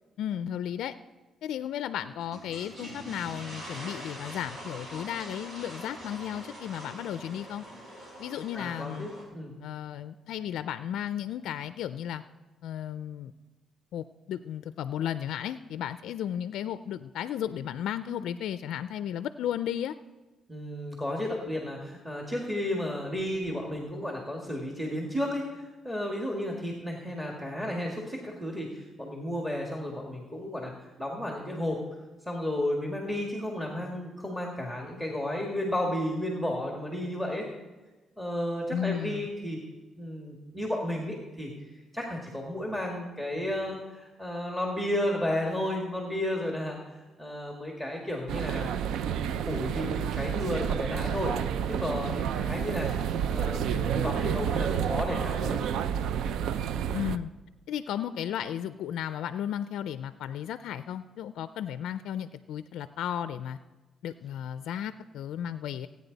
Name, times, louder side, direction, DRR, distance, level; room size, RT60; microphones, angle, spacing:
voice 1, 0.2-0.9 1.4-7.6 8.2-9.1 9.6-12.2 12.6-13.3 13.9-19.9 38.7-39.3 56.9-57.3 57.7-63.6 64.0-65.9, left 10 dB, 80° left, 12 dB, 0.3 m, -34 dB
sound 1, 2.2-9.2, equal, 45° right, 4.8 m, -44 dB
voice 2, 8.5-9.6 20.5-30.7 31.0-31.8 32.3-37.5 38.2-39.6 40.0-41.5 41.9-48.7 49.0-51.3 51.7-52.9 53.3-55.6, left 1 dB, 10° right, 0 dB, 1.9 m, -33 dB
sound 2, 48.3-57.2, right 8 dB, 80° right, 0.4 m, -30 dB
16.5 x 9.3 x 4.0 m, 1.2 s
cardioid pair, 90°, 0 cm